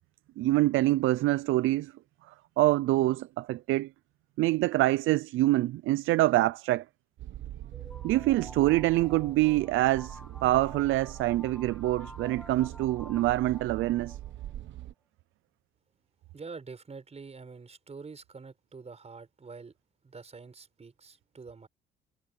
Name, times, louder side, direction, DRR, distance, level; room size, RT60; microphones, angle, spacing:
voice 1, 0.4-1.9 2.6-3.9 4.4-6.8 8.0-14.2, right 17 dB, 85° right, 0.5 m, -25 dB
sound 1, 7.2-14.9, right 13 dB, 70° right, 1.1 m, -43 dB
sound 2, 7.7-14.5, left 1 dB, 5° left, 1.5 m, -50 dB
voice 2, 16.3-19.7 20.0-21.7, right 4 dB, 30° right, 6.3 m, -46 dB
cardioid pair, 90°, 20 cm